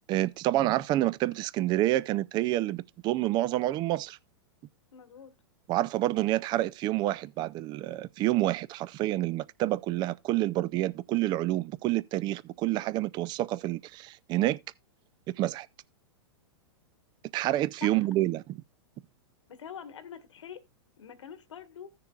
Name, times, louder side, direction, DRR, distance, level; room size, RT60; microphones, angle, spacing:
voice 1, 0.1-4.2 5.7-14.6 15.4-15.7 17.3-18.4, right 15 dB, 30° right, 0.4 m, -28 dB
voice 2, 4.9-5.3 17.8-18.1 19.5-20.6 21.0-21.9, left 8 dB, 85° left, 1.5 m, -45 dB
16.0 x 6.8 x 2.3 m
hypercardioid pair, 130°, 15 cm